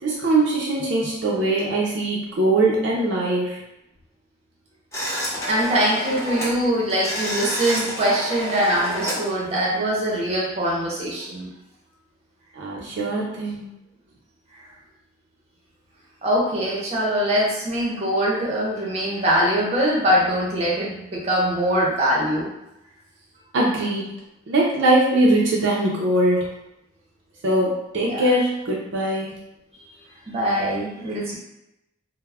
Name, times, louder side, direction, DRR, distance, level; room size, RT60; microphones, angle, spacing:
voice 1, 0.0-3.6 12.6-13.7 23.5-24.0 24.5-26.4 27.4-29.3, right 1 dB, 65° right, -4 dB, 0.5 m, -21 dB
sound 1, 4.9-6.6 6.9-9.2, equal, 15° left, 0.8 m, -29 dB
voice 2, 5.5-11.5 16.2-22.5 28.0-28.2 30.3-31.3, equal, 35° right, -4 dB, 0.7 m, -22 dB
2.2 x 2.0 x 3.3 m, 0.89 s
head